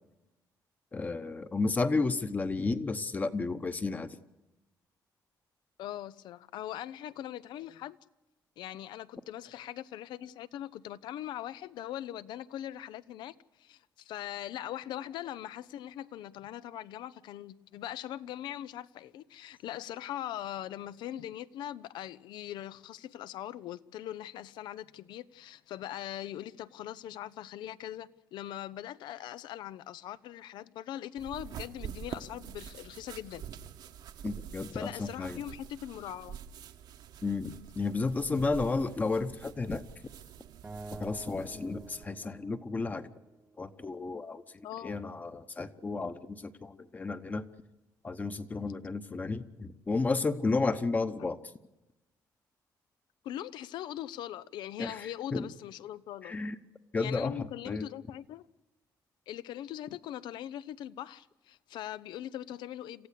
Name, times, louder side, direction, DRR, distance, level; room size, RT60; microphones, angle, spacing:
voice 1, 0.9-4.1 34.2-35.4 37.2-39.8 41.0-43.1 43.6-44.4 44.8-47.4 48.0-51.4 54.8-54.9 55.3-55.5 56.2-56.5 56.9-57.4 57.7-57.8, left 3 dB, 20° left, 1.0 m, -32 dB
voice 2, 5.8-8.0 8.6-33.4 34.7-36.4 44.6-45.0 53.2-56.3 57.0-58.5 59.3-63.1, left 12 dB, 85° left, 0.7 m, -41 dB
sound 1, 31.2-42.0, right 9 dB, 70° right, 1.2 m, -46 dB
Acoustic guitar, 40.6-43.9, right 3 dB, 20° right, 0.9 m, -49 dB
27.0 x 15.0 x 8.3 m
cardioid pair, 155°, 8 cm